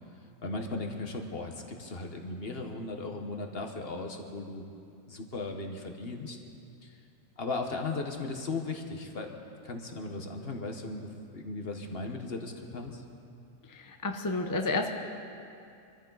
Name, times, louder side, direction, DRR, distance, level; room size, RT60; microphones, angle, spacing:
voice 1, 0.4-4.6 5.1-6.4 6.8-7.0 7.4-13.0, left 3 dB, 45° left, 3 dB, 1.4 m, -37 dB
voice 2, 13.7-14.9, left 3 dB, 20° left, 4 dB, 0.6 m, -31 dB
24.5 x 14.5 x 4.0 m, 2.5 s
omnidirectional pair, 1.5 m